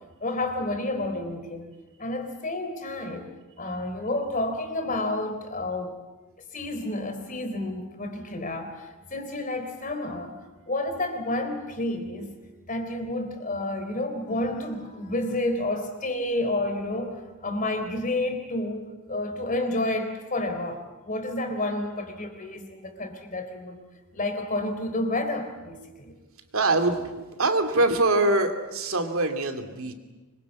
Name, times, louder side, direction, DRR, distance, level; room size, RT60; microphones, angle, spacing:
voice 1, 0.2-1.7 2.0-3.3 3.6-6.0 6.5-10.4 10.7-12.3 12.7-17.2 17.4-23.8 24.1-26.2, left 2 dB, 35° left, 6 dB, 3.7 m, -30 dB
voice 2, 26.5-29.9, right 2 dB, 70° right, 7 dB, 2.5 m, -24 dB
25.0 x 22.5 x 8.4 m, 1.2 s
head